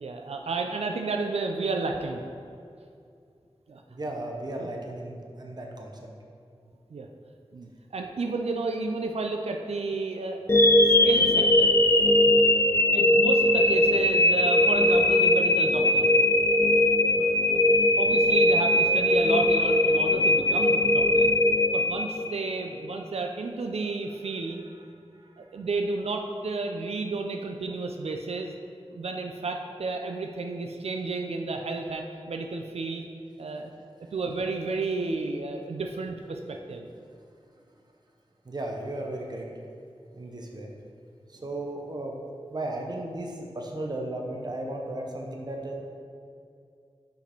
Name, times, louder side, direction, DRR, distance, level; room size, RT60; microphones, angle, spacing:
voice 1, 0.0-2.2 3.7-3.8 4.6-4.7 6.9-7.1 7.5-10.4 10.8-11.7 12.9-16.1 17.2-17.6 18.0-21.3 21.7-24.6 25.4-28.5 28.9-33.0 33.4-33.7 34.1-36.9, right 3 dB, 80° right, 3 dB, 0.4 m, -32 dB
voice 2, 3.9-5.9 25.2-25.4 38.4-39.5 40.1-40.7 41.3-42.1 42.5-45.8, right 1 dB, 40° right, 0 dB, 0.7 m, -35 dB
sound 1, 10.5-22.6, left 1 dB, 25° left, 0.5 m, -20 dB
5.2 x 4.8 x 4.5 m, 2.4 s
wide cardioid pair, 65°, 10 cm